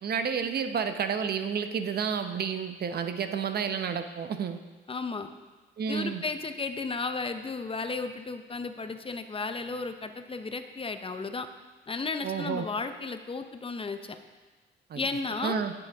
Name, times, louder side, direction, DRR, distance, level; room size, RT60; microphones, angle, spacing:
voice 1, 0.0-4.6 5.8-6.2 12.2-12.7 14.9-15.1 15.4-15.7, right 6 dB, 55° right, 8 dB, 0.8 m, -30 dB
voice 2, 4.9-5.3 5.9-11.5 11.9-14.2 15.0-15.6, left 4 dB, 25° left, 8 dB, 0.7 m, -34 dB
15.5 x 7.1 x 3.5 m, 1.3 s
cardioid pair, 90°, 20 cm